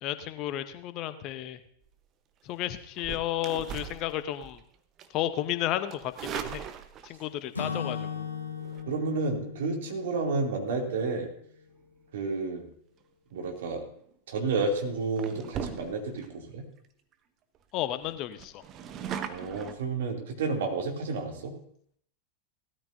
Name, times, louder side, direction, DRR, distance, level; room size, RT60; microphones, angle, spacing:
voice 1, 0.0-1.6 2.4-4.6 5.1-6.6 7.0-8.3 17.7-18.6, left 13 dB, 40° left, 12 dB, 0.8 m, -32 dB
sound 1, 2.9-4.6 5.0-5.3 5.9-7.3 8.6-8.8 13.9-14.1 14.6-14.8 15.2-16.3 16.8-16.9 17.1-17.2 17.5-17.6 18.0-19.7, right 8 dB, 30° right, 1.0 m, -39 dB
Acoustic guitar / Strum, 7.5-11.5, left 6 dB, 75° left, 1.7 m, -38 dB
voice 2, 8.9-11.3 12.1-12.6 13.3-13.8 14.3-16.6 19.3-21.5, right 3 dB, 60° right, 1 dB, 2.7 m, -31 dB
18.5 x 13.5 x 2.7 m, 0.65 s
figure-of-eight pair, 90°, 0 cm